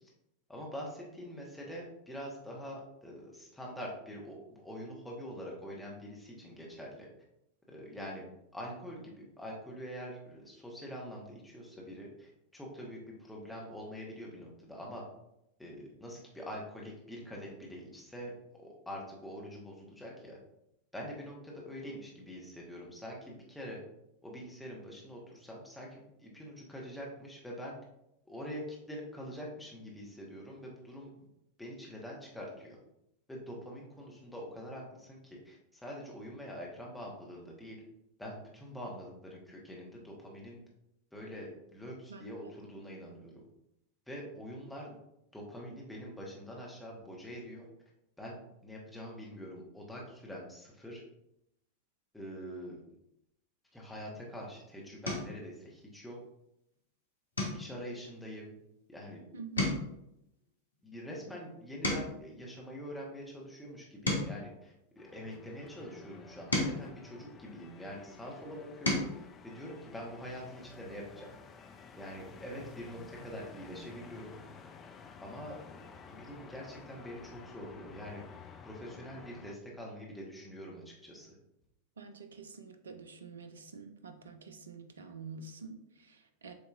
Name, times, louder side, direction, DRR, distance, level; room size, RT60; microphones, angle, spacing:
voice 1, 0.5-7.1 7.7-8.2 8.5-15.0 15.6-20.4 20.9-23.8 24.2-27.8 28.3-31.3 31.6-32.8 33.3-37.8 38.2-40.6 41.1-43.4 44.1-45.0 45.3-47.7 48.2-51.0 52.1-52.8 53.7-56.2 57.5-58.5 58.9-59.2 60.8-71.4 71.9-74.4 75.2-81.4, equal, 5° left, -3 dB, 1.2 m, -45 dB
sound 1, 54.2-54.4 55.0-55.4 55.9-56.3 56.6-56.8 57.3-59.1 59.4-62.4 63.0-65.4 66.1-68.0 68.5-69.2 70.6-70.7 71.0-71.2, left 1 dB, 80° left, 1.1 m, -37 dB
voice 2, 59.3-59.8 82.0-86.5, right 5 dB, 70° right, 8 dB, 0.5 m, -47 dB
sound 2, 65.0-79.5, left 5 dB, 25° left, 0.4 m, -52 dB
7.4 x 2.9 x 2.5 m, 0.82 s
figure-of-eight pair, 90°, 0 cm